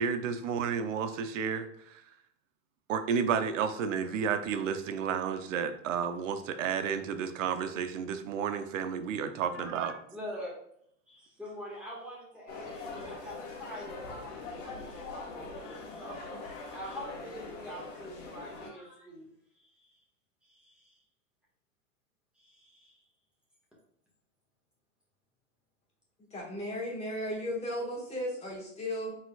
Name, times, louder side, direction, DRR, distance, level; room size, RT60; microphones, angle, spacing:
voice 1, 0.0-1.7 2.9-9.9, right 7 dB, 85° right, 9 dB, 0.6 m, -31 dB
voice 2, 9.5-10.5 11.1-19.3 19.5-20.0 20.4-21.0 22.3-23.0, equal, 5° right, -6 dB, 1.6 m, -45 dB
sound 1, 12.5-18.7, left 3 dB, 65° left, 1.6 m, -43 dB
voice 3, 26.2-29.1, equal, 15° left, -4 dB, 1.5 m, -35 dB
4.2 x 4.1 x 2.3 m, 0.71 s
supercardioid pair, 135°, 37 cm